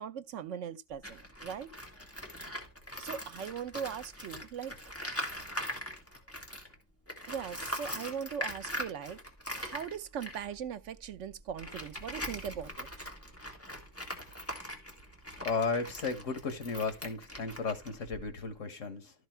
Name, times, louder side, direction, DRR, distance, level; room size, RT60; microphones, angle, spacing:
voice 1, 0.0-1.7 3.0-4.8 7.3-9.2 9.6-13.1, right 8 dB, 80° right, 1.1 m, -40 dB
Tools, 0.9-6.7 7.1-18.5, equal, 10° left, 1.9 m, -42 dB
voice 2, 15.5-19.1, left 4 dB, 80° left, 1.9 m, -34 dB
13.0 x 4.7 x 4.5 m
omnidirectional pair, 1.3 m